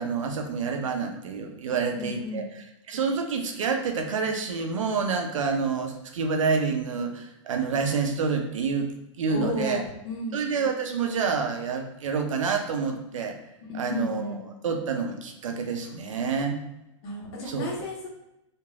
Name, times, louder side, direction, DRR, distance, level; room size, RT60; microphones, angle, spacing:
voice 1, 0.0-8.9 9.2-9.8 10.3-13.4 13.7-16.6 17.4-17.7, right 5 dB, 75° right, 4 dB, 0.5 m, -28 dB
voice 2, 1.9-2.5 9.3-10.4 13.7-14.4 17.0-18.1, left 2 dB, 55° left, -2 dB, 1.1 m, -33 dB
3.0 x 2.5 x 2.4 m, 0.87 s
hypercardioid pair, 115°, 16 cm